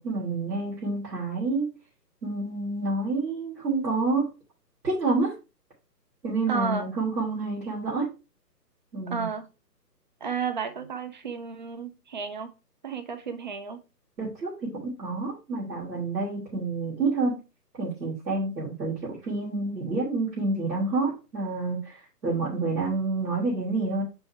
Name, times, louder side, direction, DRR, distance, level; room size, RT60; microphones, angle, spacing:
voice 1, 0.0-1.7 2.2-4.3 4.8-5.3 6.2-8.1 8.9-9.3 14.2-17.4 17.8-22.0 22.2-24.0, right 3 dB, 80° right, 3.6 m, -28 dB
voice 2, 6.5-6.8 9.1-9.5 10.2-12.5 12.8-13.8, right 5 dB, 30° right, 0.5 m, -32 dB
5.4 x 4.3 x 4.4 m
hypercardioid pair, 145°, 49 cm